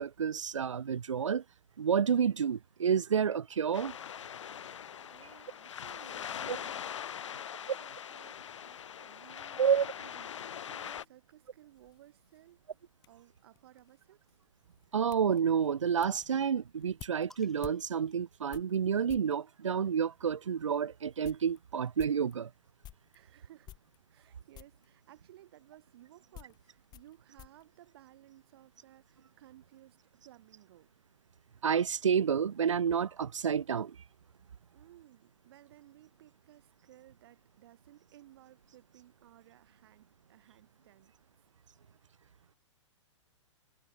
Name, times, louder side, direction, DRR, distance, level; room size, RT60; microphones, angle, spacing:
voice 1, 0.0-1.4 1.8-3.9 6.5-6.6 9.6-9.9 14.9-22.5 31.6-34.0, right 7 dB, 75° right, 0.6 m, -29 dB
sound 1, 3.7-11.1, left 9 dB, 70° left, 0.4 m, -42 dB
voice 2, 5.1-6.9 7.1-8.3 8.6-9.6 10.0-10.3 10.6-12.6 13.1-14.4 23.1-23.8 24.1-30.9 34.7-41.1, right 14 dB, 50° right, 2.9 m, -59 dB
sound 2, 10.8-19.4 20.1-20.2 20.7-20.8 21.0-23.2 23.6-24.3 24.5-24.9 25.7-28.6 28.9-29.5, left 13 dB, 25° left, 3.9 m, -55 dB
sound 3, 17.3-19.1 20.2-21.9, left 1 dB, ahead, 4.0 m, -65 dB
figure-of-eight pair, 110°, 16 cm